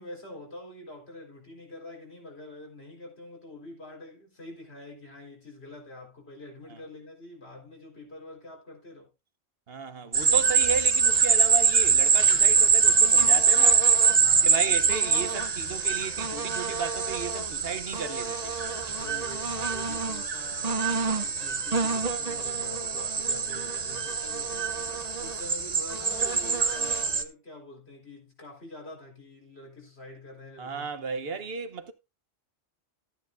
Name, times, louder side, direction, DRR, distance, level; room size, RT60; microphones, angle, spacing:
voice 1, 0.0-9.1 14.1-14.7 18.8-30.9, left 2 dB, 55° left, 4.4 m, -46 dB
voice 2, 9.7-13.9 14.4-18.7 30.6-31.9, right 5 dB, 55° right, 1.2 m, -34 dB
sound 1, 10.1-27.2, right 5 dB, 35° right, 0.9 m, -24 dB
13.5 x 9.2 x 2.5 m
omnidirectional pair, 1.2 m